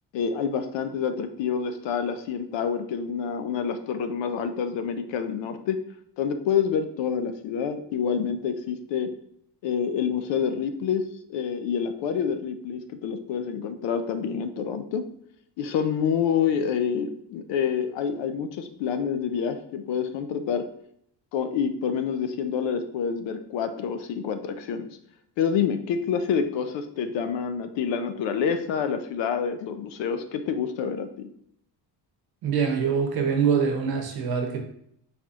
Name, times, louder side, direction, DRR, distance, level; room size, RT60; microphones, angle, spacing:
voice 1, 0.1-5.8 6.2-9.1 9.6-15.1 15.6-20.7 21.3-24.9 25.4-31.3, left 7 dB, 80° left, 9 dB, 0.6 m, -27 dB
voice 2, 32.4-34.6, right 6 dB, 60° right, 4 dB, 0.9 m, -24 dB
4.3 x 4.3 x 2.4 m, 0.71 s
cardioid pair, 150°, 43 cm